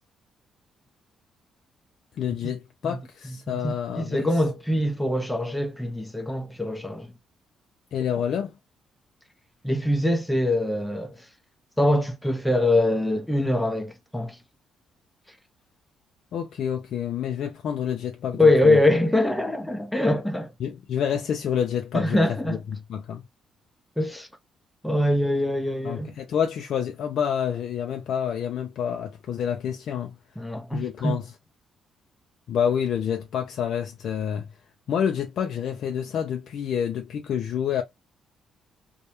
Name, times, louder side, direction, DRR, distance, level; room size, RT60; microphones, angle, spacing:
voice 1, 2.2-4.3 7.9-8.5 16.3-18.8 20.6-22.2 22.5-22.6 22.9-23.2 25.8-30.2 30.7-31.3 32.5-34.5 34.9-37.8, left 8 dB, 70° left, 0.3 m, -28 dB
voice 2, 3.2-7.1 9.6-11.2 11.8-14.4 18.4-20.5 21.9-22.6 24.0-24.3 24.8-26.1 30.4-31.2, left 1 dB, 5° left, 0.5 m, -23 dB
2.1 x 2.0 x 2.8 m
cardioid pair, 90°, 0 cm